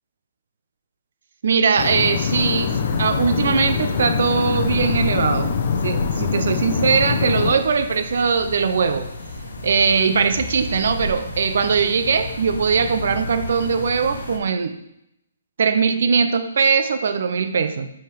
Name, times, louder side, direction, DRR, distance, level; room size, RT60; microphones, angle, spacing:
voice 1, 1.4-9.1 9.6-14.8 15.6-17.9, right 5 dB, 65° right, 10 dB, 0.6 m, -20 dB
sound 1, 1.8-7.5, left 6 dB, 50° left, 0.7 m, -23 dB
sound 2, 2.4-14.4, left 1 dB, 80° left, 1.1 m, -33 dB
5.7 x 5.4 x 3.4 m, 0.82 s
figure-of-eight pair, 135°, 0 cm